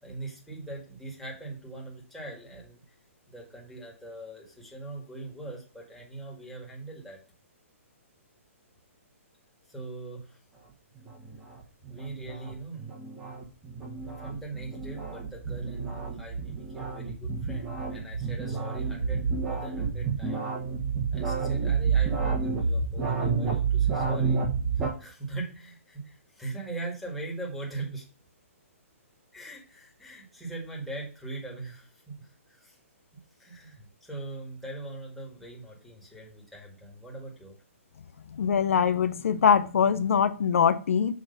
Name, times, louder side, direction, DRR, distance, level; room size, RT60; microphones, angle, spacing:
voice 1, 0.0-2.8 3.3-7.2 9.7-10.4 11.9-12.9 14.1-20.4 21.1-24.4 24.8-28.1 29.3-32.8 33.4-37.6, right 2 dB, ahead, -3 dB, 2.1 m, -41 dB
sound 1, 10.9-24.9, right 5 dB, 15° right, 1.6 m, -29 dB
voice 2, 38.3-41.1, left 7 dB, 70° left, 11 dB, 0.6 m, -23 dB
6.4 x 3.3 x 5.4 m, 0.36 s
hypercardioid pair, 145°, 8 cm